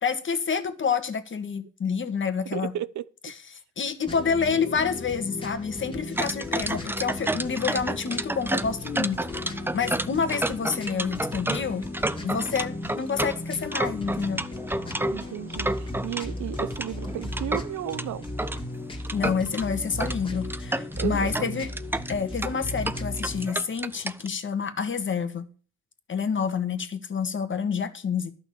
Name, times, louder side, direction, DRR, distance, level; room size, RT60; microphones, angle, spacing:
voice 1, 0.0-2.7 3.2-9.2 9.7-11.9 12.2-14.4 19.1-21.7 22.1-25.5 26.1-28.3, left 6 dB, 40° left, 1.6 m, -28 dB
voice 2, 2.5-3.0 15.1-18.3 21.0-21.7, right 12 dB, 70° right, 0.7 m, -34 dB
sound 1, 4.1-23.5, left 1 dB, 15° left, 2.2 m, -36 dB
sound 2, 6.2-16.2 16.6-18.6 19.0-19.6 20.0-20.2 20.4-24.3, right 2 dB, 5° right, 0.6 m, -30 dB
11.5 x 6.0 x 6.8 m
cardioid pair, 90°, 30 cm